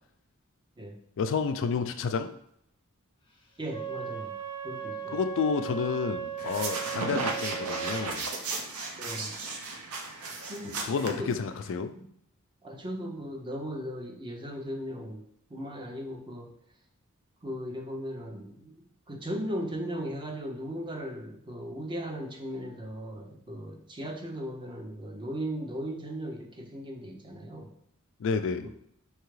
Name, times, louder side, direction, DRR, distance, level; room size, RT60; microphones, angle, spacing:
voice 1, 1.2-2.3 5.1-8.2 10.7-11.9 28.2-28.7, left 5 dB, 60° left, 9 dB, 0.3 m, -30 dB
Wind instrument woodwind instrument, 3.6-8.1, right 8 dB, 20° left, 0.6 m, -37 dB
voice 2, 3.6-4.3 4.6-5.2 9.0-9.3 10.5-11.3 11.9-12.1 12.6-15.2 15.5-16.5 17.4-27.7 28.6-28.7, equal, 20° right, 1 dB, 0.6 m, -37 dB
sound 1, 6.4-11.7, right 3 dB, 80° right, 0.7 m, -35 dB
4.7 x 2.8 x 3.1 m, 0.70 s
head